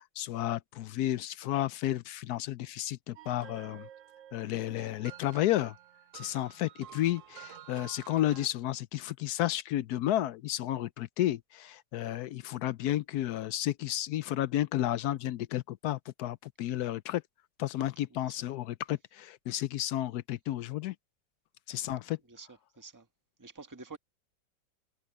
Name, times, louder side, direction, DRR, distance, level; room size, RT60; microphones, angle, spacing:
voice 1, 0.0-3.9 4.3-5.8 6.1-17.2 17.6-20.9 21.7-22.2, left 13 dB, 70° left, 1.0 m, -32 dB
sound 1, 3.2-8.5, right 11 dB, 80° right, 0.7 m, -51 dB
voice 2, 22.3-23.1 23.4-24.0, right 4 dB, 10° right, 1.3 m, -49 dB
omnidirectional pair, 2.0 m